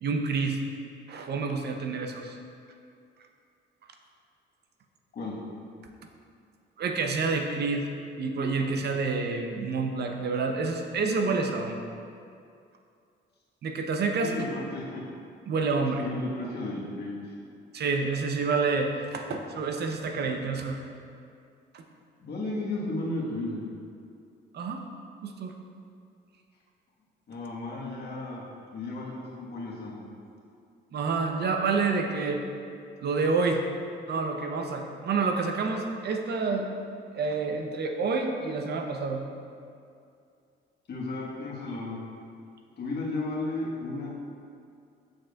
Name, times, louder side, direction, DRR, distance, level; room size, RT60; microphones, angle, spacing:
voice 1, 0.0-0.6 1.1-2.4 6.8-7.9 8.2-11.8 13.6-14.3 15.5-16.1 17.7-20.8 21.7-21.8 24.5-24.9 25.2-25.5 30.9-32.4 33.0-33.6 34.1-36.7 37.1-39.2, right 4 dB, 55° right, 4 dB, 0.6 m, -28 dB
voice 2, 14.2-15.0 16.0-17.3 22.2-23.6 27.3-28.4 28.7-30.0 40.9-42.0 42.8-44.1, left 2 dB, 55° left, -4 dB, 1.4 m, -34 dB
6.6 x 6.4 x 2.3 m, 2.4 s
cardioid pair, 90°, 20 cm